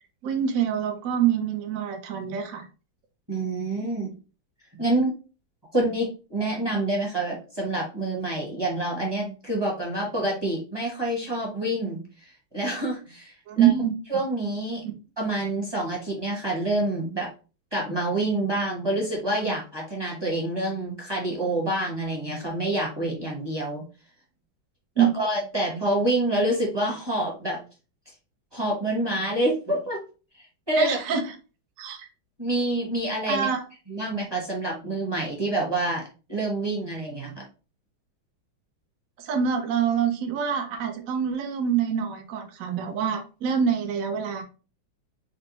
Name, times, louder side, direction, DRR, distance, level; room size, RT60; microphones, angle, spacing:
voice 1, 0.2-2.7 13.5-13.9 25.0-25.1 30.8-31.2 31.8-32.1 33.3-33.6 39.2-44.4, right 8 dB, 70° right, 4 dB, 0.8 m, -25 dB
voice 2, 3.3-4.1 4.7-5.1 5.7-13.7 14.1-14.8 15.2-17.3 17.7-23.8 25.0-27.6 28.5-30.0 30.7-31.0 32.4-33.5 33.9-37.5, right 1 dB, 20° right, -2 dB, 0.7 m, -27 dB
4.1 x 2.2 x 3.9 m, 0.34 s
omnidirectional pair, 2.2 m